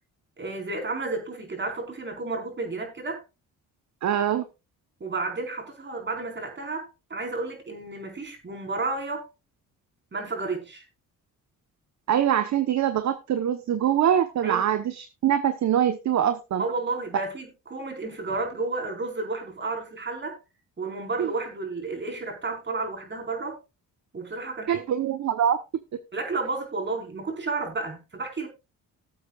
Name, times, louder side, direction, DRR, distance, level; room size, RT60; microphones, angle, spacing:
voice 1, 0.4-3.2 5.0-9.3 10.1-10.8 14.4-14.8 16.6-20.4 20.8-23.6 24.1-24.8 26.1-28.5, right 3 dB, 35° right, 4.5 m, -32 dB
voice 2, 4.0-4.4 12.1-16.6 21.2-21.3 24.7-25.6, right 9 dB, 55° right, 1.0 m, -24 dB
19.0 x 7.9 x 2.4 m
cardioid pair, 85°, 34 cm